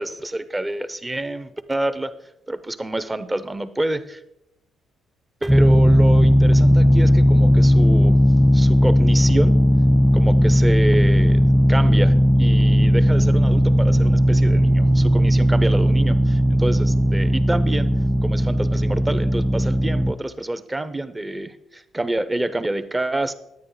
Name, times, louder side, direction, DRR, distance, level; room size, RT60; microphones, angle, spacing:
voice 1, 0.0-2.1 2.5-4.2 5.4-8.2 8.5-9.6 10.1-17.9 18.2-23.3, right 1 dB, 15° right, 12 dB, 0.7 m, -27 dB
sound 1, 5.5-20.1, equal, 5° left, 0.3 m, -16 dB
9.6 x 9.4 x 3.9 m, 0.82 s
cardioid pair, 90°, 0 cm